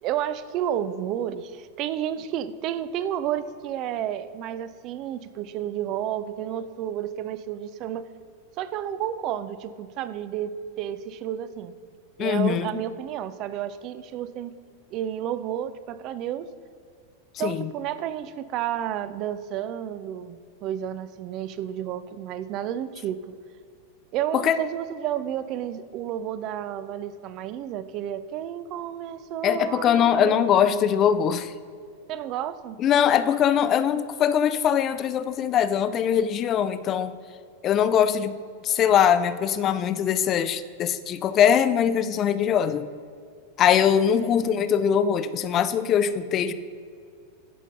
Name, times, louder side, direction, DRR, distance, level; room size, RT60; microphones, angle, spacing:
voice 1, 0.0-8.1 8.6-11.7 12.2-14.5 14.9-16.5 17.4-23.3 24.1-30.5 32.1-32.8 44.2-44.6, right 10 dB, 45° right, 14 dB, 0.5 m, -31 dB
voice 2, 12.2-12.8 17.3-17.7 24.3-24.6 29.4-31.5 32.8-37.1 37.6-38.4 38.6-42.9 43.6-46.5, left 8 dB, 35° left, 14 dB, 0.5 m, -22 dB
10.0 x 6.0 x 5.3 m, 2.2 s
figure-of-eight pair, 95°, 0 cm